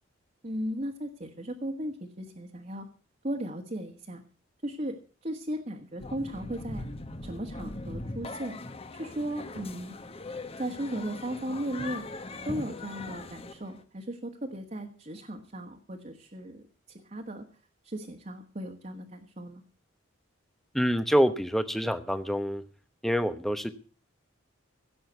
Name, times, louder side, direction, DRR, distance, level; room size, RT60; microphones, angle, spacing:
voice 1, 0.4-2.9 3.2-4.2 4.6-5.0 5.2-6.9 7.2-8.6 8.9-9.9 10.6-12.0 12.4-17.4 17.8-19.6, right 1 dB, 35° right, 2 dB, 1.6 m, -36 dB
sound 1, 6.0-13.8, left 2 dB, 30° left, 1.2 m, -40 dB
voice 2, 20.7-22.6 23.0-23.7, equal, ahead, 11 dB, 0.9 m, -26 dB
16.5 x 7.8 x 8.0 m, 0.40 s
head